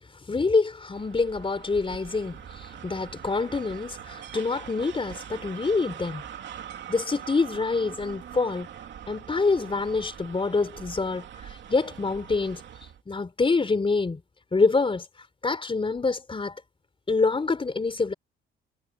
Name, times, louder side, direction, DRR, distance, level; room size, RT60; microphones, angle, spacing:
voice 1, 0.3-6.2 6.9-8.7 9.1-12.6 13.1-14.2 14.5-15.1 15.4-16.6 17.1-18.1, left 4 dB, 25° left, 4.2 m, -26 dB
sound 1, 0.9-13.0, right 9 dB, 65° right, 3.0 m, -43 dB
cardioid pair, 90°, 20 cm